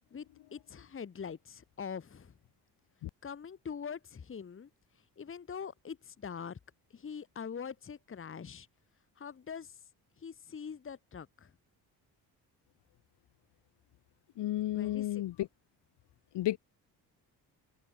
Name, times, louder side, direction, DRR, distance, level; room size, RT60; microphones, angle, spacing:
voice 1, 0.5-2.3 3.2-4.7 5.2-6.6 6.9-8.7 9.2-9.8 10.2-11.5 14.7-15.2, left 6 dB, 30° left, 1.6 m, -43 dB
voice 2, 14.4-15.5 16.3-16.6, left 14 dB, 85° left, 3.3 m, -32 dB
cardioid pair, 110°, 40 cm